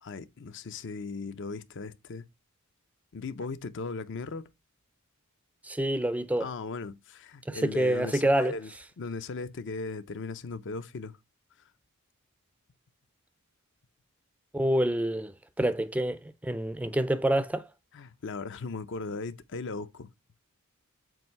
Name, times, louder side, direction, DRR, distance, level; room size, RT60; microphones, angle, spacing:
voice 1, 0.0-2.2 3.1-4.5 6.4-8.7 9.0-11.1 17.9-20.1, left 4 dB, 55° left, 0.6 m, -37 dB
voice 2, 5.6-6.5 7.5-8.5 14.5-17.7, right 1 dB, 5° right, 0.4 m, -27 dB
7.6 x 2.7 x 5.5 m
head